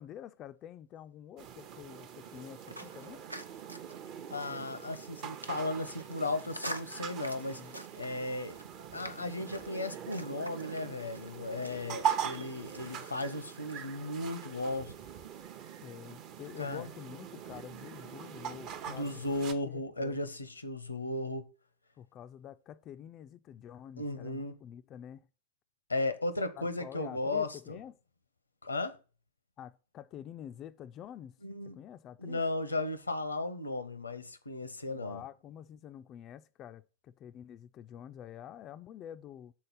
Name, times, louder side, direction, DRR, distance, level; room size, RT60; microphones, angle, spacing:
voice 1, 0.0-3.2 7.5-7.8 15.8-19.4 19.7-20.2 22.0-25.3 26.6-27.9 29.6-31.4 31.8-32.4 34.9-39.5, left 10 dB, 30° left, 0.3 m, -48 dB
sound 1, 1.4-19.5, right 9 dB, 40° right, 0.7 m, -42 dB
sound 2, 2.2-13.9, equal, 90° right, 0.6 m, -48 dB
voice 2, 4.3-8.6 8.9-14.9 16.6-16.9 18.9-21.5 24.0-24.5 25.9-27.8 28.6-29.0 31.4-31.8 32.2-35.2, left 2 dB, 80° left, 0.7 m, -35 dB
6.4 x 3.9 x 5.7 m
figure-of-eight pair, 90°, 0 cm